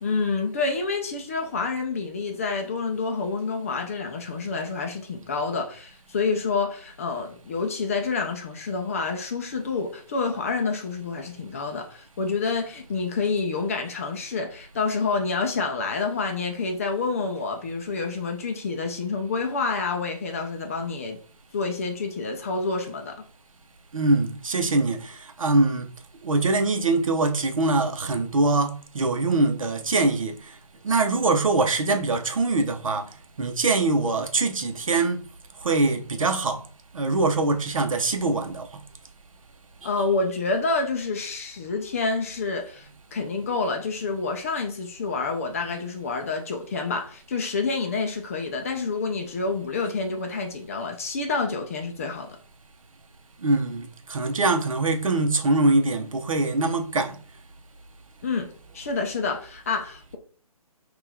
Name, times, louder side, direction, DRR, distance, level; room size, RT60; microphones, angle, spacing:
voice 1, 0.0-21.2 21.5-23.2 39.8-52.4 58.2-60.2, left 4 dB, 25° left, 0.4 m, -28 dB
voice 2, 23.9-25.9 26.2-30.4 30.8-33.0 33.4-35.2 35.6-36.6 36.9-38.7 39.8-40.0 53.4-57.2, right 2 dB, 60° right, 0.8 m, -23 dB
4.3 x 2.4 x 3.4 m
figure-of-eight pair, 140°, 19 cm